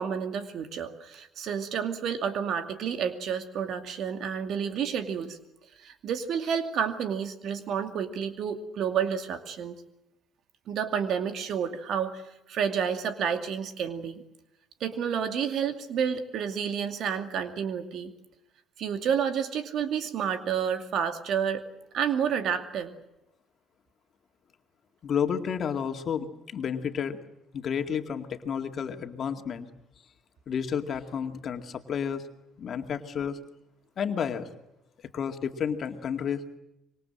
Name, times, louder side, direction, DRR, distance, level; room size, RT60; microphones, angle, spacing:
voice 1, 0.0-5.4 5.8-9.7 10.7-12.2 12.5-14.2 14.8-18.1 18.8-21.6 21.9-22.9, right 7 dB, 60° right, 8 dB, 2.4 m, -30 dB
voice 2, 25.0-27.2 27.5-29.7 30.5-32.2 32.6-33.4 34.0-34.5 35.1-36.4, left 7 dB, 50° left, 6 dB, 2.2 m, -31 dB
26.0 x 23.5 x 7.7 m, 0.90 s
hypercardioid pair, 55°, 0 cm